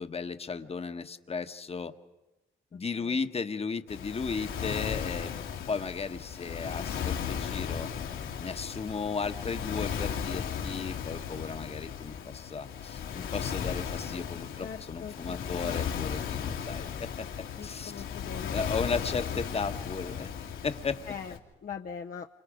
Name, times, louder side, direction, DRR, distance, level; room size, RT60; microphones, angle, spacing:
voice 1, 0.0-1.9 2.7-5.3 5.7-7.9 8.4-17.3 17.6-17.9 18.5-20.3 20.6-21.0, left 5 dB, 30° left, 9 dB, 1.2 m, -35 dB
voice 2, 2.7-3.2 14.6-15.8 17.6-18.6 21.1-22.3, left 6 dB, 45° left, 3 dB, 0.8 m, -42 dB
Waves surf, 3.9-21.4, left 8 dB, 80° left, 2.7 m, -36 dB
29.0 x 26.5 x 5.1 m, 1.0 s
cardioid pair, 90°, 20 cm